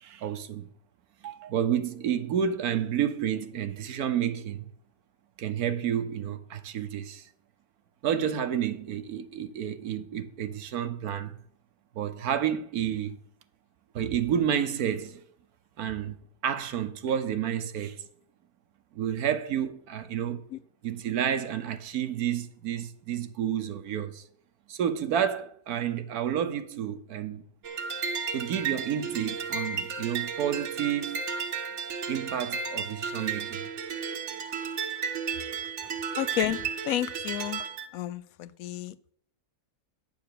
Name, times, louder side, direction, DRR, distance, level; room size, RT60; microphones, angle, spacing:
voice 1, 0.0-0.7 1.2-4.7 5.4-7.3 8.0-11.4 12.0-13.2 13.9-15.2 15.8-16.2 16.4-18.0 18.9-20.4 20.8-24.2 24.7-27.4 28.3-31.2 32.1-33.6, right 9 dB, 80° right, 1.3 m, -30 dB
sound 1, 27.6-37.9, right 6 dB, 55° right, 1.1 m, -33 dB
voice 2, 36.2-37.7 37.9-39.1, left 12 dB, 75° left, 1.0 m, -32 dB
9.4 x 6.8 x 6.7 m
omnidirectional pair, 1.6 m